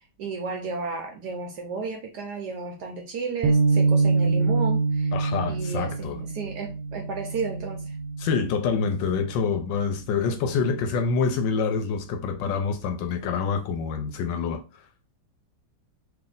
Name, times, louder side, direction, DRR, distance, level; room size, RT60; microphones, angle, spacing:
voice 1, 0.2-5.1 5.5-7.9, right 4 dB, 70° right, 1.0 m, -33 dB
sound 1, 3.4-9.9, right 4 dB, 85° right, 1.4 m, -25 dB
voice 2, 5.1-6.2 8.2-14.6, left 5 dB, 75° left, 1.2 m, -26 dB
3.2 x 2.6 x 3.8 m
omnidirectional pair, 2.2 m